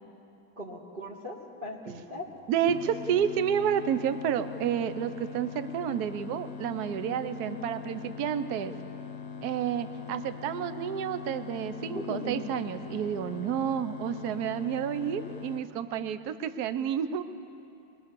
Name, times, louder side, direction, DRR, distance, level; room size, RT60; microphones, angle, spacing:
voice 1, 0.6-2.3 7.4-7.6 11.8-12.4, equal, 25° right, -3 dB, 1.9 m, -38 dB
voice 2, 2.5-8.7 9.4-17.2, right 9 dB, 60° right, 11 dB, 1.1 m, -30 dB
sound 1, 2.7-15.6, left 6 dB, 45° left, 1.2 m, -41 dB
23.0 x 22.5 x 6.9 m, 2.8 s
omnidirectional pair, 2.2 m